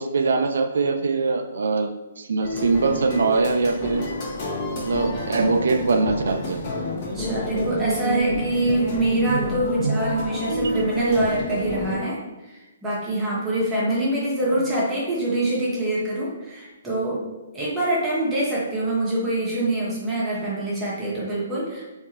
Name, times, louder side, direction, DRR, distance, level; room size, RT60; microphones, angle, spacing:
voice 1, 0.0-1.9 2.2-4.0 4.8-6.6 9.3-9.5 9.8-10.1 10.5-10.8, right 4 dB, 65° right, 7 dB, 0.4 m, -22 dB
sound 1, 2.4-12.0, left 1 dB, 40° left, 1.1 m, -30 dB
voice 2, 7.1-12.2 12.5-17.2 17.5-22.0, right 1 dB, 15° right, -7 dB, 1.1 m, -25 dB
3.6 x 2.7 x 2.9 m, 1.1 s
figure-of-eight pair, 130°, 0 cm